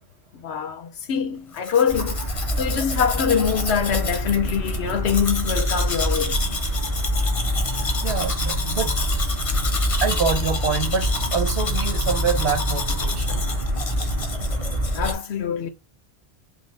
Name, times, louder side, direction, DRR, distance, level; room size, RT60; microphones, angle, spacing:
voice 1, 0.3-2.2 2.6-6.4 14.9-15.7, left 7 dB, 90° left, 1.0 m, -24 dB
Domestic sounds home sounds, 1.5-15.1, left 4 dB, 35° left, 0.7 m, -31 dB
sound 1, 1.9-15.1, equal, 30° right, 1.2 m, -26 dB
voice 2, 7.6-8.9 10.0-13.5, right 5 dB, 80° right, 1.3 m, -26 dB
5.1 x 2.1 x 3.3 m
omnidirectional pair, 1.1 m